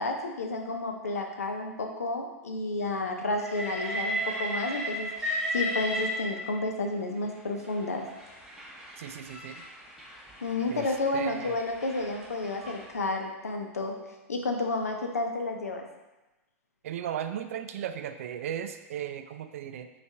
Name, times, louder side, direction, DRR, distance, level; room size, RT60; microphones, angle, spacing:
voice 1, 0.0-8.1 10.4-14.0 14.3-15.9, left 2 dB, 85° left, 3 dB, 0.6 m, -31 dB
Train, 3.4-6.8 7.6-12.9, equal, 5° right, 0.9 m, -35 dB
voice 2, 9.0-9.6 10.7-10.9 11.1-11.6 16.8-19.9, right 9 dB, 65° right, 9 dB, 0.4 m, -36 dB
5.2 x 2.5 x 3.3 m, 1.1 s
hypercardioid pair, 100°, 8 cm